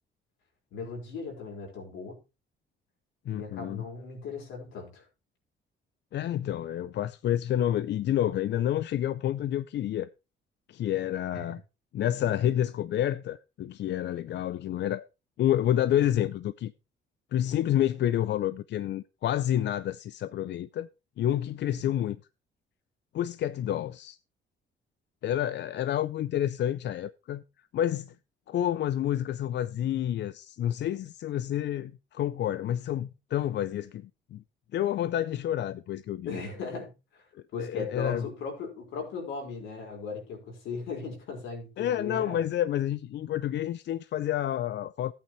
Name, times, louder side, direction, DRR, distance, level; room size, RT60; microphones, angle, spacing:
voice 1, 0.7-2.2 3.3-5.0 11.3-11.4 21.6-21.9 36.2-37.2 37.5-42.4, left 4 dB, 85° left, 4.9 m, -38 dB
voice 2, 3.3-3.8 6.1-10.1 10.7-11.6 11.9-15.1 15.4-16.7 17.3-20.9 21.2-22.2 23.1-24.2 25.2-27.4 27.7-28.1 28.5-34.4 34.7-36.3 37.3-38.3 41.8-45.1, left 11 dB, 60° left, 0.5 m, -29 dB
14.0 x 8.8 x 3.2 m
cardioid pair, 90°, 20 cm